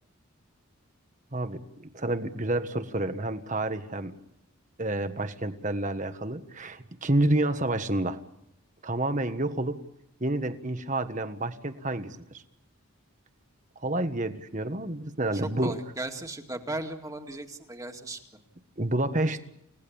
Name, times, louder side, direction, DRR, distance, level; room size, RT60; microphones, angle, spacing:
voice 1, 1.3-4.2 4.8-8.2 8.8-9.8 10.2-12.4 13.8-15.8 18.8-19.4, right 1 dB, 35° right, 9 dB, 1.5 m, -29 dB
voice 2, 15.3-18.2, right 2 dB, 15° right, 4 dB, 2.2 m, -36 dB
30.0 x 18.0 x 8.8 m, 0.79 s
head